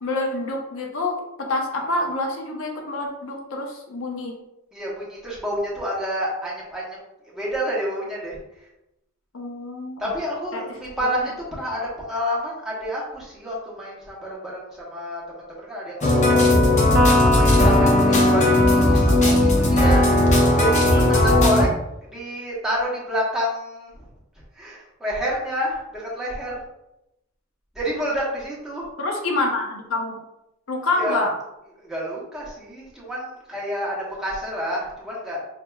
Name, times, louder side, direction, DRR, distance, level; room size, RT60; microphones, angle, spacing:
voice 1, 0.0-4.3 9.3-10.0 10.5-10.6 17.6-18.0 20.9-21.1 29.0-30.2 30.7-31.3, left 2 dB, 75° left, 1 dB, 0.8 m, -27 dB
voice 2, 4.7-7.0 7.3-8.4 10.0-20.1 20.6-21.7 22.1-24.1 24.5-26.6 27.7-28.9 31.0-31.2 31.8-35.4, equal, 5° right, -7 dB, 1.2 m, -29 dB
sound 1, 16.0-21.6, left 1 dB, 35° left, 0.7 m, -17 dB
Electric guitar, 16.9-20.5, right 1 dB, 50° right, 0.6 m, -27 dB
5.6 x 2.8 x 2.3 m, 0.88 s
head